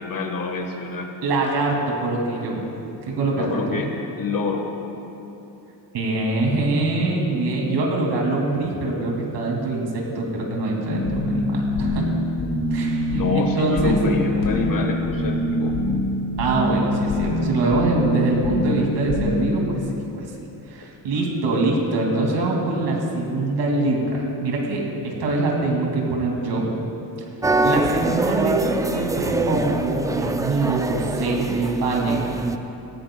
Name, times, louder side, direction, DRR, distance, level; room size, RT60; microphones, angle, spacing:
voice 1, 0.0-1.1 3.3-3.9 4.2-4.7 13.1-15.7, left 4 dB, 50° left, 3 dB, 1.4 m, -26 dB
voice 2, 1.2-2.6 3.1-3.8 5.9-12.1 12.7-14.0 16.4-19.8 20.1-20.3 20.7-26.7 27.6-32.3, right 2 dB, 75° right, -1 dB, 2.5 m, -24 dB
sound 1, 10.9-19.5, left 1 dB, 70° left, 2.9 m, -24 dB
sound 2, 27.4-32.6, right 2 dB, 10° right, 0.3 m, -24 dB
17.5 x 14.0 x 2.3 m, 2.9 s
cardioid pair, 110°, 42 cm